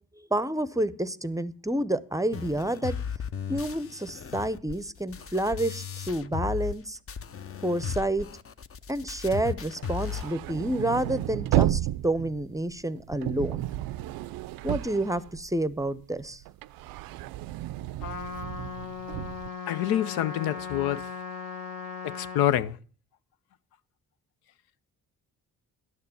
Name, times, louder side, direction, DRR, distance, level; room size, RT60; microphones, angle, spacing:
voice 1, 0.3-3.0 3.5-7.0 7.6-8.3 8.9-13.6 14.6-16.4, right 1 dB, 10° right, 0.6 m, -29 dB
sound 1, 2.3-6.8 7.1-10.3, left 7 dB, 40° left, 0.7 m, -36 dB
sound 2, 9.7-15.8 16.2-19.5, right 14 dB, 75° right, 0.5 m, -32 dB
Trumpet, 18.0-22.4, left 5 dB, 65° left, 1.7 m, -38 dB
voice 2, 19.7-21.0 22.0-22.8, left 12 dB, 80° left, 0.6 m, -26 dB
11.0 x 6.7 x 6.9 m
supercardioid pair, 60°, 36 cm